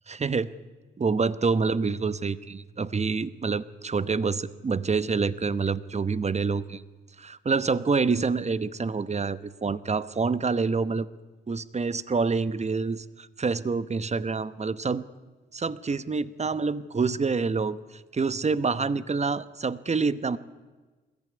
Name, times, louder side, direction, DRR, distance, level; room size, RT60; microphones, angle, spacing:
voice 1, 0.1-0.5 1.0-6.8 7.2-11.1 11.5-15.0 15.5-20.4, right 4 dB, 30° right, 16 dB, 1.0 m, -27 dB
21.5 x 14.5 x 9.6 m, 1.3 s
supercardioid pair, 50°, 21 cm